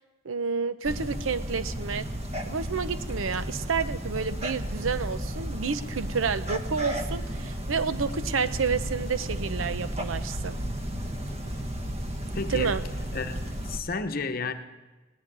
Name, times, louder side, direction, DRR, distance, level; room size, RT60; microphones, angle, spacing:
voice 1, 0.2-2.1 2.5-10.6 12.5-12.8, right 5 dB, 90° right, 13 dB, 0.7 m, -30 dB
sound 1, 0.8-13.8, equal, 30° right, 1.1 m, -33 dB
voice 2, 12.3-12.8 13.1-14.5, left 4 dB, 45° left, 8 dB, 0.8 m, -32 dB
17.5 x 6.7 x 9.8 m, 1.2 s
head